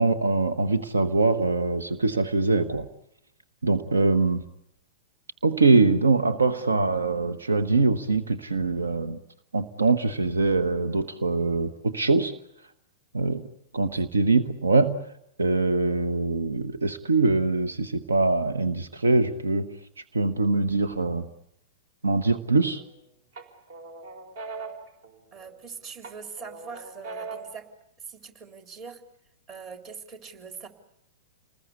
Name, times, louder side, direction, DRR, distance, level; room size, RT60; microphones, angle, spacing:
voice 1, 0.0-2.9 3.6-4.4 5.4-9.2 9.5-12.3 13.1-13.4 13.7-15.0 15.4-19.7 20.1-21.3 22.0-22.8, right 3 dB, 75° right, 11 dB, 1.3 m, -23 dB
sound 1, 22.4-22.9 23.4-25.6 26.0-27.6, right 4 dB, 50° right, 4.5 m, -40 dB
voice 2, 25.3-27.7 28.0-29.0 29.5-30.7, right 5 dB, 30° right, 6 dB, 3.7 m, -42 dB
29.5 x 20.5 x 8.3 m, 0.78 s
figure-of-eight pair, 105°, 0 cm